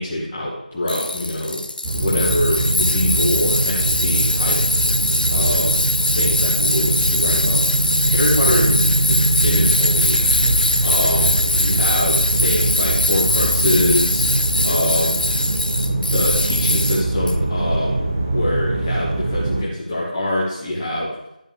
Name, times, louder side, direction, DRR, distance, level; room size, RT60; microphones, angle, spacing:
voice 1, 0.0-1.6 1.9-4.8 5.3-5.8 6.1-7.8 8.0-15.2 15.9-21.1, left 1 dB, 10° left, -8 dB, 1.1 m, -24 dB
Tools, 0.9-17.3, left 1 dB, 85° left, 0.7 m, -22 dB
sound 1, 1.8-19.6, right 2 dB, 15° right, 0.7 m, -22 dB
10.5 x 3.8 x 7.0 m, 0.86 s
figure-of-eight pair, 175°, 5 cm